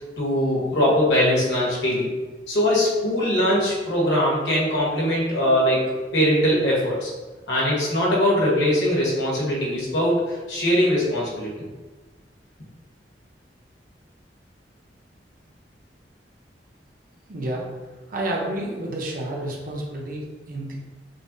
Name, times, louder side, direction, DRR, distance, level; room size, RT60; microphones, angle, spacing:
voice 1, 0.2-2.1 2.5-5.8 6.1-7.1 7.5-11.7, equal, 70° left, -5 dB, 1.2 m, -21 dB
voice 2, 17.3-17.7 18.1-20.8, right 1 dB, 50° right, -2 dB, 0.7 m, -30 dB
5.3 x 2.1 x 2.6 m, 1.3 s
head